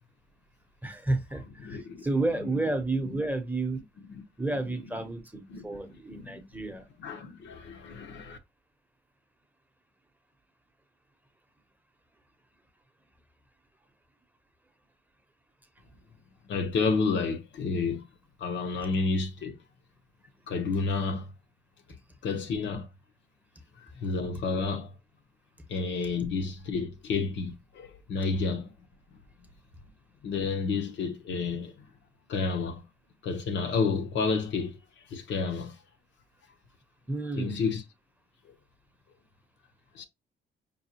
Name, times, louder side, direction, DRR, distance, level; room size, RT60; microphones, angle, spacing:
voice 1, 0.8-3.8 4.4-6.8 37.1-37.7, right 2 dB, 10° right, 0.8 m, -31 dB
voice 2, 1.6-2.1 2.3-2.5 3.1-3.2 4.1-4.2 4.5-4.6 4.9-5.0 5.5-5.7 6.1-6.4 7.0-8.4 16.4-18.1 18.4-19.6 20.5-21.3 22.2-22.9 23.8-24.9 25.7-28.7 30.2-31.8 32.3-32.8 33.2-34.8 35.1-35.7 37.4-37.8 39.9-40.0, left 4 dB, 65° left, 0.8 m, -30 dB
5.4 x 2.3 x 2.8 m
cardioid pair, 90°, 20 cm